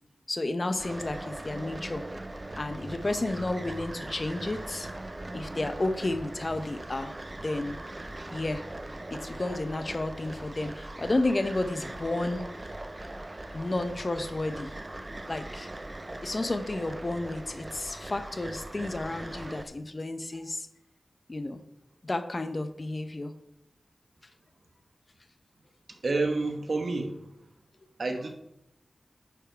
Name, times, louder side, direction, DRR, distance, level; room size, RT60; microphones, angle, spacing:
voice 1, 0.3-2.1 2.5-4.9 5.3-7.1 7.4-7.8 8.3-8.6 9.1-12.4 13.5-14.8 15.3-15.7 16.2-20.7 21.3-21.6 22.0-23.3, left 2 dB, 40° left, 9 dB, 0.8 m, -31 dB
sound 1, 0.8-19.6, right 1 dB, 30° right, 0.6 m, -40 dB
voice 2, 25.9-27.4 28.0-28.3, right 3 dB, 65° right, 5 dB, 1.1 m, -29 dB
10.0 x 4.6 x 4.5 m, 0.82 s
wide cardioid pair, 75°, 0 cm